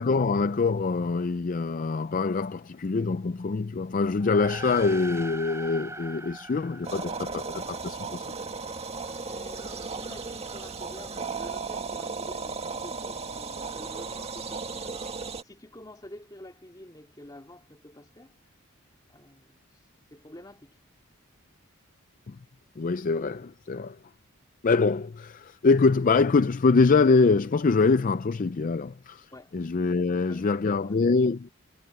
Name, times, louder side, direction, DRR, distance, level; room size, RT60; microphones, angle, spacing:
voice 1, 0.0-8.4 22.3-22.4 22.8-24.0 24.6-31.5, left 4 dB, 40° left, 0.4 m, -24 dB
sound 1, 4.1-7.8, right 2 dB, 15° right, 3.8 m, -40 dB
sound 2, 6.8-15.4, right 4 dB, 30° right, 1.7 m, -35 dB
voice 2, 8.9-18.4 19.1-19.6 20.1-20.8 29.3-29.6 30.0-31.0, left 1 dB, 15° left, 2.3 m, -48 dB
head